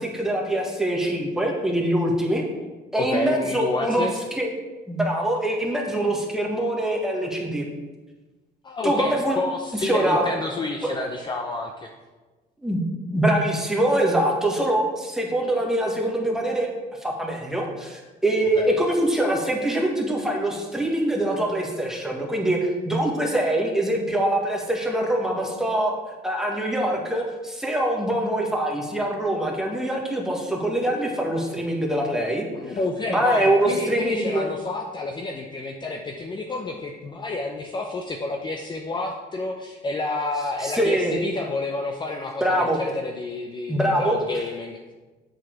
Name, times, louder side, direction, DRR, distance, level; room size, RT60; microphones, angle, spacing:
voice 1, 0.0-2.4 2.9-4.1 4.4-4.5 4.9-7.7 8.8-9.4 9.8-10.2 10.8-10.9 12.6-12.8 13.1-16.7 17.0-25.9 26.2-32.8 33.1-34.5 40.6-41.2 42.4-42.8 43.7-44.2, right 1 dB, 5° right, -1 dB, 1.7 m, -24 dB
voice 2, 3.0-4.2 8.6-11.9 18.5-18.8 32.6-44.9, left 2 dB, 25° left, 2 dB, 0.7 m, -30 dB
7.5 x 6.4 x 4.6 m, 1.2 s
cardioid pair, 110°, 17 cm